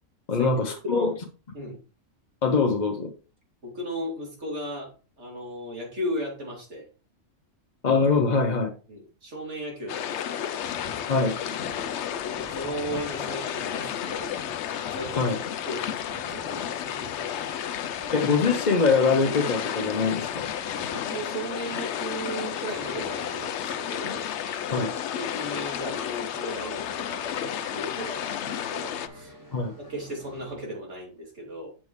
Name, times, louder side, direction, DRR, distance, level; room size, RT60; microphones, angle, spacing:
voice 1, 0.3-1.1 2.4-3.1 7.8-8.7 11.1-11.4 15.2-15.4 18.1-20.5 24.7-24.9 29.5-29.7, left 4 dB, 40° left, 0.8 m, -23 dB
voice 2, 3.6-6.9 8.9-10.6 12.3-14.3 14.9-16.8 20.9-24.2 24.7-24.9 25.1-29.4 29.8-31.7, equal, 60° right, 2.9 m, -36 dB
sound 1, 9.9-29.1, left 10 dB, 70° left, 0.9 m, -32 dB
sound 2, 10.6-30.5, equal, 15° right, 3.3 m, -46 dB
7.2 x 6.8 x 3.1 m
omnidirectional pair, 1.3 m